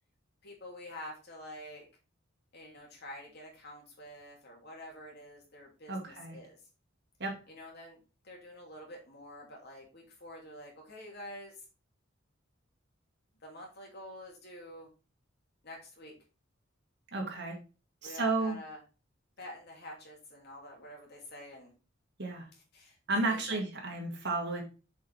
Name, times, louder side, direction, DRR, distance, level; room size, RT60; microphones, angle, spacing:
voice 1, 0.4-1.9 2.5-6.6 7.5-11.6 13.4-14.9 15.6-16.2 18.0-18.8 19.4-21.7 22.5-23.0 23.2-23.6, left 1 dB, 55° left, 0 dB, 2.8 m, -48 dB
voice 2, 5.9-6.4 7.2-7.3 17.1-17.6 18.0-18.6 22.2-22.5 23.1-24.6, right 3 dB, 60° right, 1 dB, 2.2 m, -32 dB
6.7 x 5.4 x 3.5 m, 0.33 s
head